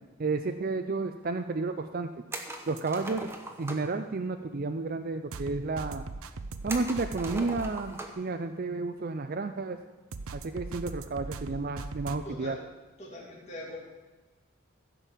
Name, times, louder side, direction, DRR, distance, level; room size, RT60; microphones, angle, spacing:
voice 1, 0.2-2.1 2.7-3.3 3.6-6.0 6.6-9.8 10.3-12.6, right 3 dB, 40° right, 7 dB, 0.5 m, -31 dB
sound 1, 2.3-4.0 6.7-8.3 8.6-8.7 10.4-10.6, right 2 dB, 10° right, 0.9 m, -40 dB
sound 2, 2.8-2.9 5.3-7.7 10.1-12.2, right 3 dB, 85° right, 0.7 m, -39 dB
voice 2, 12.2-12.6 13.0-13.8, left 1 dB, 30° left, -5 dB, 2.7 m, -42 dB
15.5 x 5.4 x 7.4 m, 1.2 s
head